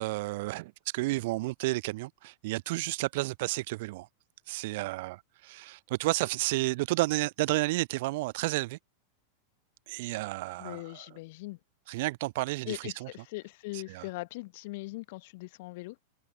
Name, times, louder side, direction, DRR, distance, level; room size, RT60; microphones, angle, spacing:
voice 1, 0.0-4.1 4.5-8.8 9.9-11.2 11.9-13.1 13.7-14.1, right 20 dB, 50° right, 0.7 m, -31 dB
voice 2, 10.6-11.6 12.7-16.0, left 22 dB, 50° left, 1.2 m, -40 dB
figure-of-eight pair, 90°, 0 cm